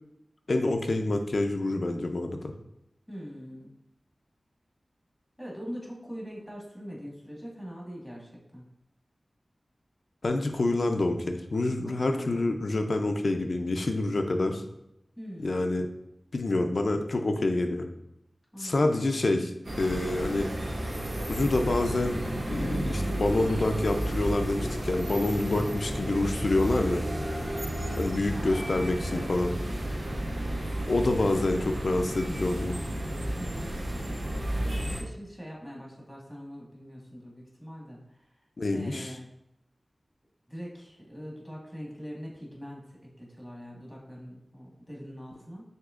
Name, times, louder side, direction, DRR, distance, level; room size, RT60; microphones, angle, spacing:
voice 1, 0.5-2.5 10.2-14.6 15.4-15.9 16.3-17.9 18.6-19.5 19.8-20.5 21.3-22.2 22.5-27.0 28.0-29.5 30.9-32.8 38.6-39.1, left 2 dB, 70° left, 5 dB, 0.5 m, -27 dB
voice 2, 3.1-3.7 5.4-8.6 11.8-12.4 15.2-15.8 18.5-18.9 28.3-29.3 29.8-31.0 33.3-38.3 38.7-39.3 40.5-45.6, equal, ahead, -3 dB, 1.5 m, -43 dB
sound 1, 19.6-35.0, right 1 dB, 65° right, 0.9 m, -32 dB
6.2 x 2.9 x 2.4 m, 0.81 s
wide cardioid pair, 60°, 0 cm